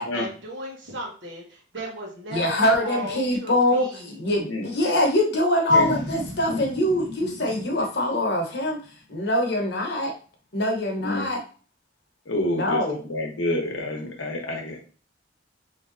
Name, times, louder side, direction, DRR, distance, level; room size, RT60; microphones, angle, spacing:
voice 1, 0.1-4.2, right 1 dB, 70° right, -1 dB, 1.1 m, -36 dB
voice 2, 2.3-8.8 9.1-10.1 10.5-11.4 12.5-13.0, left 1 dB, 60° left, 0 dB, 0.9 m, -23 dB
Boom, 5.7-9.0, equal, 20° right, 1.1 m, -38 dB
voice 3, 12.3-12.8 13.1-14.8, left 1 dB, 90° left, 2 dB, 0.8 m, -28 dB
3.3 x 2.7 x 2.6 m, 0.39 s
head